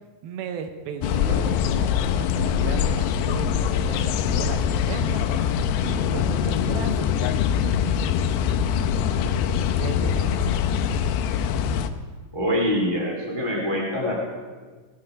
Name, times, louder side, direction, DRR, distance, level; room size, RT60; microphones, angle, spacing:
voice 1, 0.2-5.2 5.8-7.2 7.5-8.1 8.6-9.5 9.8-10.8, right 7 dB, 75° right, 7 dB, 2.5 m, -35 dB
sound 1, 1.0-11.9, left 8 dB, 85° left, 2.5 m, -23 dB
voice 2, 12.3-14.1, equal, 25° left, -1 dB, 0.5 m, -24 dB
18.5 x 7.8 x 4.9 m, 1.5 s
omnidirectional pair, 4.6 m